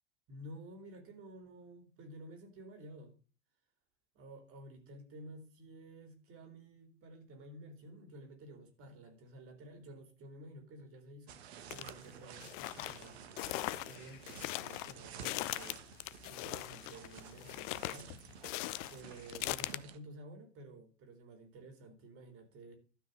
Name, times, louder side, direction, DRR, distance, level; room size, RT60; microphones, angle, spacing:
voice 1, 0.3-3.2 4.1-11.4 11.7-13.3 13.9-15.8 16.3-18.1 18.9-22.7, right 1 dB, 40° right, 3.9 m, -52 dB
sound 1, 11.3-20.0, right 8 dB, 65° right, 1.5 m, -53 dB
sound 2, 11.7-11.9 12.4-19.8, left 18 dB, 45° left, 0.7 m, -40 dB
12.5 x 5.6 x 6.5 m
figure-of-eight pair, 85°, 35 cm